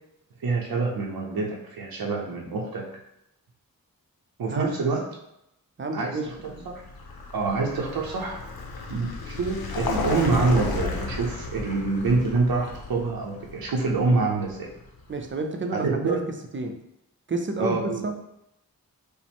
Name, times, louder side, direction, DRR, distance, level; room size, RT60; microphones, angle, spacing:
voice 1, 0.4-2.9 4.4-5.0 5.9-6.8 7.3-8.5 8.9-14.7 15.7-16.2 17.6-18.0, right 3 dB, 85° right, -1 dB, 0.7 m, -26 dB
voice 2, 5.8-6.8 15.1-16.2 16.5-16.8 17.3-18.1, right 3 dB, 35° right, 4 dB, 0.5 m, -30 dB
Vehicle, 6.3-15.1, left 3 dB, 85° left, 0.6 m, -33 dB
5.0 x 2.1 x 3.5 m, 0.83 s
wide cardioid pair, 70°, 35 cm